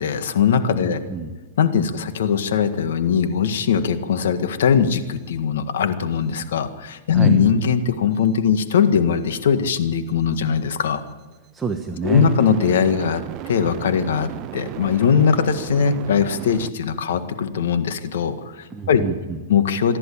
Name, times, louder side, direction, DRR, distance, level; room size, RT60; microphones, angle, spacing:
voice 1, 0.0-1.0 1.6-11.0 12.0-13.2 13.5-19.0 19.5-20.0, left 7 dB, 80° left, 10 dB, 1.7 m, -20 dB
voice 2, 0.8-1.3 7.1-7.4 11.5-12.3 18.7-19.4, right 4 dB, 10° right, 3 dB, 1.2 m, -28 dB
sound 1, 7.2-7.3 12.1-16.7, right 16 dB, 35° right, 0.6 m, -35 dB
27.5 x 11.0 x 8.7 m, 1.2 s
hypercardioid pair, 140°, 0 cm